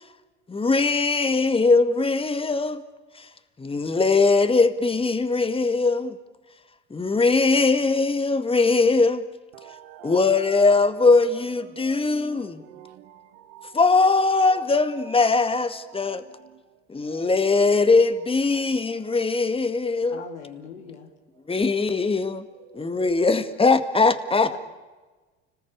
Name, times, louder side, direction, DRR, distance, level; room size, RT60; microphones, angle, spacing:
voice 1, 0.5-2.8 3.6-6.1 6.9-9.2 10.0-12.6 13.7-16.2 16.9-20.2 21.5-22.5 22.7-24.5, left 3 dB, 15° left, 2.0 m, -21 dB
voice 2, 9.5-10.1 11.7-12.4 12.6-13.7 16.0-16.2 17.1-17.2, right 12 dB, 70° right, 1.5 m, -46 dB
voice 3, 20.1-21.1 24.5-24.6, left 8 dB, 80° left, 2.6 m, -40 dB
30.0 x 20.0 x 8.7 m
hypercardioid pair, 70°, 35 cm